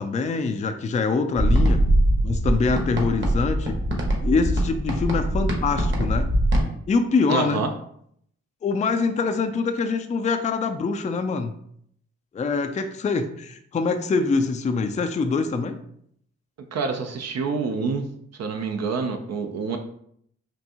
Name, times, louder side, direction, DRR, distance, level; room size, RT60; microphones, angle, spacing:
voice 1, 0.0-1.8 2.2-3.8 4.2-6.3 6.9-7.6 8.6-11.5 12.3-15.8, left 4 dB, 25° left, 7 dB, 0.4 m, -24 dB
sound 1, 1.3-6.6, right 1 dB, 40° right, 1.2 m, -22 dB
voice 2, 7.3-7.7 16.7-18.1 18.3-19.8, right 4 dB, 60° right, 5 dB, 0.6 m, -27 dB
4.4 x 2.6 x 2.9 m, 0.69 s
supercardioid pair, 55°, 30 cm